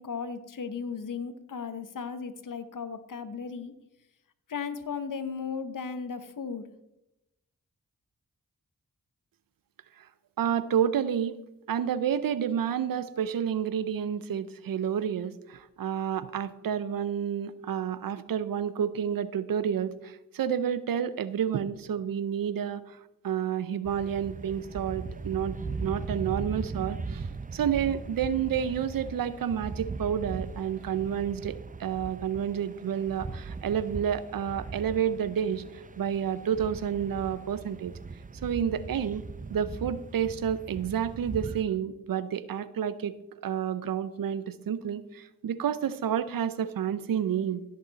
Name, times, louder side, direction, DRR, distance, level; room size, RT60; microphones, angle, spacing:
voice 1, 0.0-3.7 4.5-6.7, left 5 dB, 65° left, 12 dB, 1.0 m, -36 dB
voice 2, 10.4-11.4 11.7-23.0 23.2-27.2 27.5-37.9 38.4-39.2 39.5-43.1 43.4-47.6, right 8 dB, 80° right, 15 dB, 0.7 m, -30 dB
sound 1, 23.8-41.6, right 4 dB, 25° right, 0.6 m, -39 dB
15.5 x 6.6 x 4.0 m, 0.91 s
cardioid pair, 40°, 34 cm